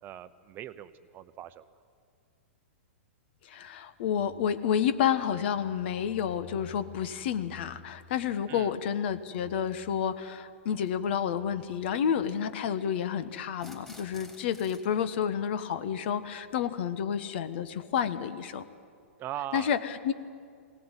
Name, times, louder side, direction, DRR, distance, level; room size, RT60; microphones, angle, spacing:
voice 1, 0.0-1.7 8.5-8.7 19.2-19.7, right 12 dB, 30° right, 12 dB, 0.8 m, -40 dB
voice 2, 3.4-18.6 19.5-20.1, left 8 dB, 60° left, 12 dB, 1.3 m, -30 dB
sound 1, 9.2-9.3 10.7-10.9 13.5-14.9, left 1 dB, 5° left, 3.4 m, -51 dB
21.5 x 18.0 x 9.1 m, 2.3 s
hypercardioid pair, 120°, 7 cm